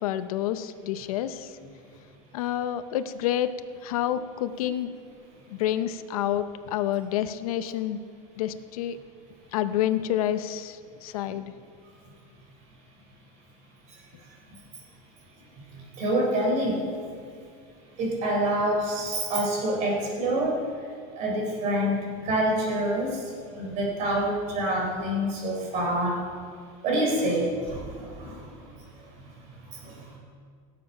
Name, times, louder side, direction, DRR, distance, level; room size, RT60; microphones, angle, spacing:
voice 1, 0.0-1.6 2.3-3.5 3.8-4.9 5.5-8.0 8.4-9.0 9.5-11.5, left 11 dB, 90° left, 11 dB, 0.7 m, -28 dB
voice 2, 16.0-16.8 18.0-20.6 21.2-23.2 23.6-26.2 26.8-28.4 29.8-29.9, right 1 dB, 40° right, -1 dB, 4.0 m, -26 dB
18.0 x 7.7 x 5.7 m, 2.2 s
supercardioid pair, 155°, 18 cm